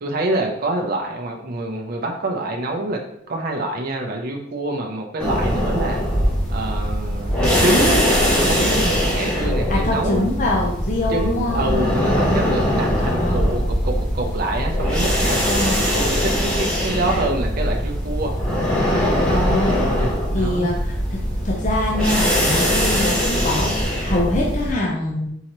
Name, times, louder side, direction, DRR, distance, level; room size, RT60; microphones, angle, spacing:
voice 1, 0.0-3.0 3.3-6.0 6.5-7.3 7.6-8.0 8.3-10.2 11.1-15.5 15.8-18.3 18.9-19.1 19.6-20.7, right 2 dB, 50° right, 1 dB, 0.6 m, -26 dB
sound 1, 5.2-24.7, equal, 5° left, 1.2 m, -21 dB
voice 2, 9.7-11.6 13.0-13.4 15.4-15.8 19.2-25.3, left 1 dB, 40° left, -2 dB, 0.6 m, -24 dB
4.2 x 3.7 x 3.0 m, 0.76 s
head